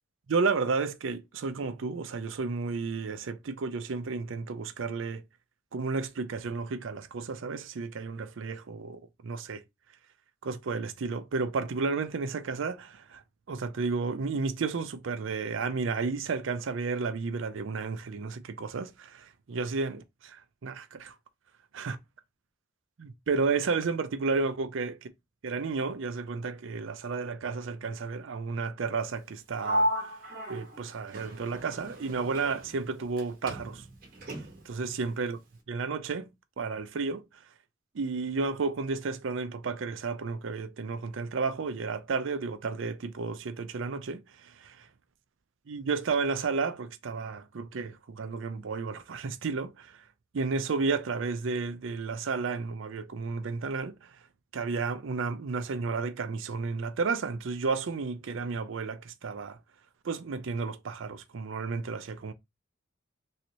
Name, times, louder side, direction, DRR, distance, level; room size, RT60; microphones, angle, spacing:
voice 1, 0.3-5.2 5.7-9.6 10.4-13.2 13.5-21.1 21.7-22.0 23.0-25.0 25.4-29.9 30.5-33.9 34.6-35.4 35.7-36.3 36.6-37.2 37.9-44.9 45.7-50.0 50.3-54.1 54.5-59.6 60.0-62.3, right 4 dB, 80° right, 0.5 m, -32 dB
Sliding door, 29.6-33.2 33.5-34.8, equal, 45° right, 0.9 m, -34 dB
3.1 x 2.9 x 2.7 m
head